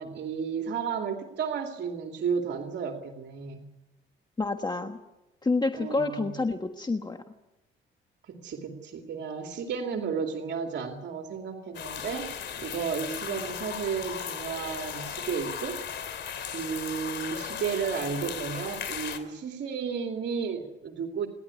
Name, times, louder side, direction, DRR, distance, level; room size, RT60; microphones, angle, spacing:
voice 1, 0.0-3.7 5.7-6.3 8.3-12.3 12.6-15.8 16.5-21.3, right 6 dB, 65° right, 2 dB, 2.6 m, -33 dB
voice 2, 4.4-5.0 5.4-7.2, left 3 dB, 20° left, 6 dB, 1.3 m, -28 dB
sound 1, 11.7-19.2, left 8 dB, 65° left, 3.1 m, -37 dB
28.5 x 11.0 x 9.7 m, 0.94 s
cardioid pair, 90°, 20 cm